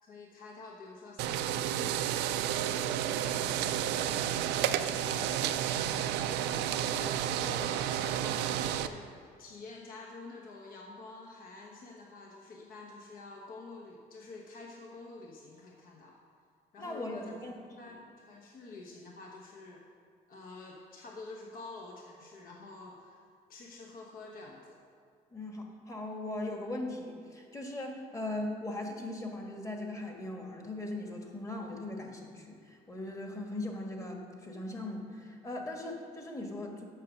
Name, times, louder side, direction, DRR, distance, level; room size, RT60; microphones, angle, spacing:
voice 1, 0.0-2.2 2.6-5.3 6.1-16.2 16.7-17.3 17.8-19.9 20.3-23.2 23.5-24.8, left 3 dB, 55° left, -1 dB, 1.1 m, -48 dB
sound 1, 1.2-8.9, right 10 dB, 90° right, 0.5 m, -31 dB
voice 2, 16.8-18.0 25.3-36.8, left 1 dB, 20° left, 1 dB, 1.5 m, -39 dB
8.2 x 6.4 x 6.3 m, 2.1 s
cardioid pair, 110°, 17 cm